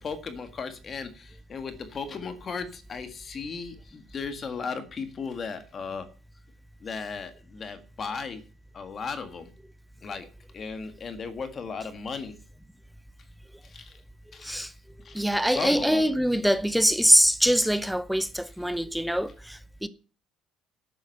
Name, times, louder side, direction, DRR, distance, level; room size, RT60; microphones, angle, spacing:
voice 1, 0.0-6.1 6.8-8.4 8.7-9.5 10.0-10.2 10.5-12.3 13.6-14.0 14.3-14.6 15.0-16.1, left 5 dB, 30° left, 1.7 m, -36 dB
voice 2, 15.1-19.9, equal, ahead, 0.7 m, -23 dB
12.0 x 9.2 x 6.7 m
cardioid pair, 155°, 0 cm